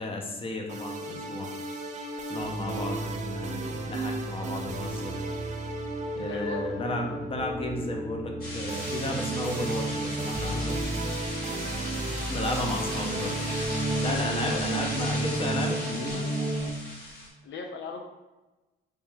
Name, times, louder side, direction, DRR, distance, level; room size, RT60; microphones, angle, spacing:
voice 1, 0.0-1.5 2.3-5.2 6.2-10.8 12.3-13.5 14.0-16.3, left 1 dB, 30° left, 2 dB, 0.7 m, -33 dB
sound 1, 0.7-16.7, right 2 dB, 35° right, 0.5 m, -33 dB
sound 2, 2.4-15.6, right 1 dB, 55° right, 0.9 m, -38 dB
voice 2, 6.2-6.7 12.3-12.6 14.3-14.7 17.4-18.0, left 5 dB, 70° left, 2 dB, 0.5 m, -38 dB
sound 3, 8.4-17.3, left 1 dB, 50° left, 1.2 m, -37 dB
3.3 x 3.2 x 3.2 m, 1.1 s
cardioid pair, 90°, 20 cm